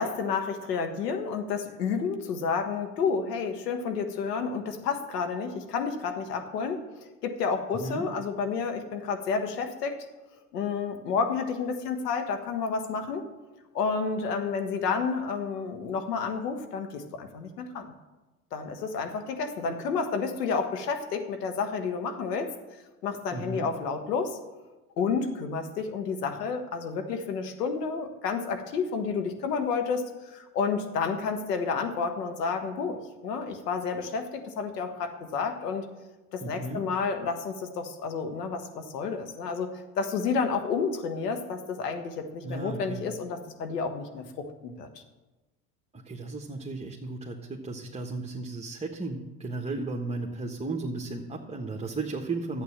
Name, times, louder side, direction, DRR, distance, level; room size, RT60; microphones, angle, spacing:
voice 1, 0.0-6.8 7.2-10.0 10.5-13.2 13.7-17.9 18.5-22.5 23.0-24.4 25.0-35.8 36.3-44.9, left 5 dB, 80° left, 6 dB, 1.5 m, -30 dB
voice 2, 7.7-8.1 23.3-23.7 36.4-36.8 42.4-43.0 45.9-52.6, right 3 dB, 15° right, 0 dB, 1.3 m, -35 dB
11.5 x 8.4 x 7.3 m, 1.1 s
hypercardioid pair, 70°, 47 cm